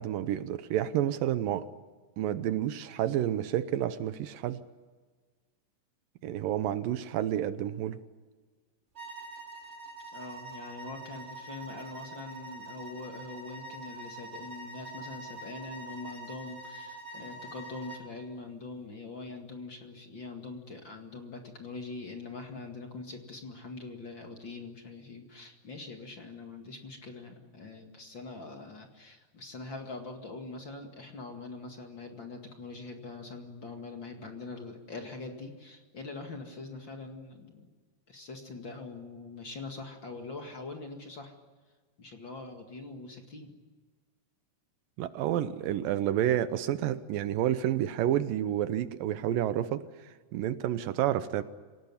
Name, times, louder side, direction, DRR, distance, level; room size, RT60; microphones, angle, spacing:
voice 1, 0.0-1.7 2.2-4.6 6.2-8.0 45.0-51.4, right 11 dB, 75° right, 13 dB, 2.5 m, -30 dB
sound 1, 8.9-18.1, right 2 dB, 20° right, 3.1 m, -45 dB
voice 2, 10.1-37.7 38.1-41.3 42.0-43.6, left 3 dB, 40° left, 3 dB, 2.3 m, -43 dB
26.5 x 18.0 x 9.8 m, 1.4 s
omnidirectional pair, 4.1 m